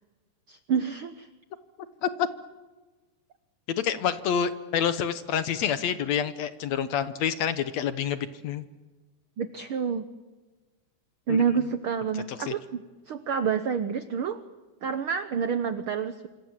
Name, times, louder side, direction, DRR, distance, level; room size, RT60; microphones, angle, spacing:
voice 1, 0.5-1.3 9.4-10.1 11.3-14.4 14.8-16.3, right 6 dB, 70° right, 10 dB, 1.2 m, -28 dB
voice 2, 3.7-8.6 11.3-11.4 12.3-12.5, left 8 dB, 65° left, 12 dB, 2.0 m, -28 dB
26.5 x 26.0 x 7.5 m, 1.2 s
omnidirectional pair, 3.7 m